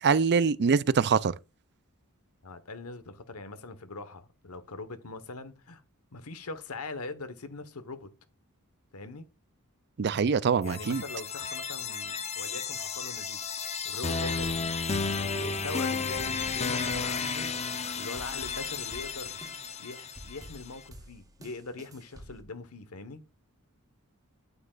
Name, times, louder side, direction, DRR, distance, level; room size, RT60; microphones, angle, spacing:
voice 1, 0.0-1.3 10.0-11.0, right 5 dB, 50° right, 0.5 m, -24 dB
voice 2, 2.4-5.8 6.1-8.1 8.9-9.3 10.6-13.4 13.8-14.8 15.3-19.4 19.8-23.2, left 3 dB, 90° left, 1.2 m, -42 dB
sound 1, 10.6-20.6, left 5 dB, 30° left, 0.8 m, -33 dB
sound 2, 14.4-22.4, right 1 dB, 15° right, 1.0 m, -50 dB
9.6 x 9.1 x 2.5 m
head